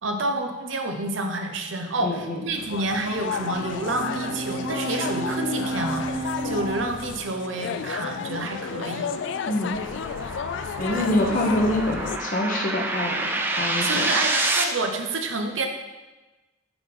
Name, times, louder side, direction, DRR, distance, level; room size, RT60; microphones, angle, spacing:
voice 1, 0.0-9.1 10.9-11.1 13.8-15.7, right 2 dB, 85° right, 4 dB, 0.7 m, -29 dB
voice 2, 2.0-2.4 9.4-9.8 10.8-14.1, left 1 dB, 45° left, 1 dB, 0.9 m, -26 dB
sound 1, 2.6-12.2, left 6 dB, 70° left, 0.3 m, -32 dB
Bowed string instrument, 3.0-8.5, right 3 dB, 55° right, 0.6 m, -33 dB
sound 2, 7.8-14.6, right 2 dB, 10° right, 0.4 m, -29 dB
6.0 x 3.8 x 5.3 m, 1.1 s
head